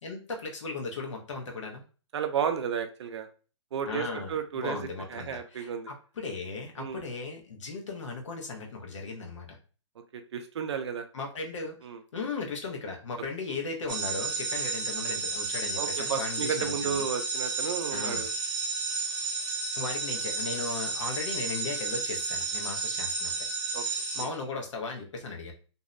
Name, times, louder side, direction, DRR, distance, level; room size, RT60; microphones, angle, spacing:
voice 1, 0.0-1.8 3.9-5.7 6.2-9.6 11.1-11.8 12.1-17.1 17.9-18.2 19.8-23.4 24.1-25.5, left 3 dB, 80° left, 1 dB, 0.9 m, -37 dB
voice 2, 2.1-3.3 3.7-5.9 6.8-7.0 10.1-11.1 11.8-12.0 15.8-18.3 23.7-23.8 24.2-24.3, right 7 dB, 65° right, 7 dB, 0.5 m, -33 dB
sound 1, 13.9-24.2, right 4 dB, 40° right, 0.8 m, -32 dB
2.6 x 2.1 x 2.5 m, 0.38 s
hypercardioid pair, 155°, 16 cm